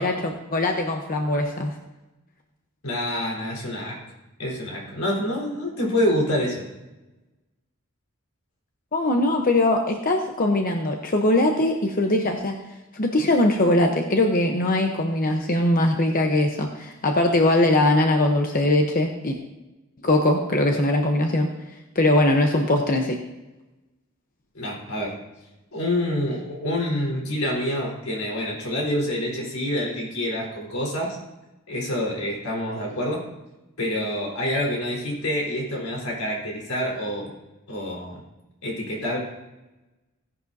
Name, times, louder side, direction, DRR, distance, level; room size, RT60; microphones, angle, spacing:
voice 1, 0.0-1.7 8.9-12.6 12.9-19.4 20.0-21.5 21.9-23.2, left 1 dB, 40° left, 3 dB, 0.9 m, -21 dB
voice 2, 2.8-4.0 4.4-6.6 24.5-25.2 25.7-31.2 31.7-33.2 33.8-37.3 37.7-38.2 38.6-39.2, left 1 dB, 90° left, -2 dB, 4.2 m, -27 dB
17.0 x 10.5 x 2.7 m, 1.0 s
head